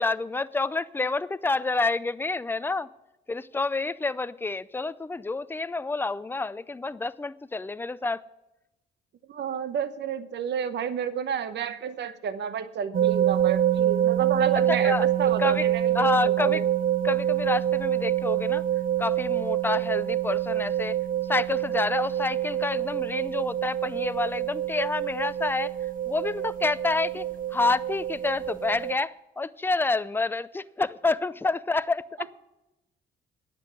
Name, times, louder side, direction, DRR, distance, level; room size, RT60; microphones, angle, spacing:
voice 1, 0.0-2.9 3.3-8.2 14.7-15.1 15.4-15.6 15.9-16.6 17.0-18.6 19.0-21.0 21.3-25.7 26.1-27.2 27.5-32.3, left 3 dB, 10° left, 15 dB, 0.4 m, -28 dB
voice 2, 9.3-16.6, right 7 dB, 60° right, 12 dB, 0.9 m, -30 dB
sound 1, 12.9-29.0, right 11 dB, 45° right, 0.5 m, -26 dB
10.0 x 7.9 x 9.5 m, 0.94 s
cardioid pair, 90°, 20 cm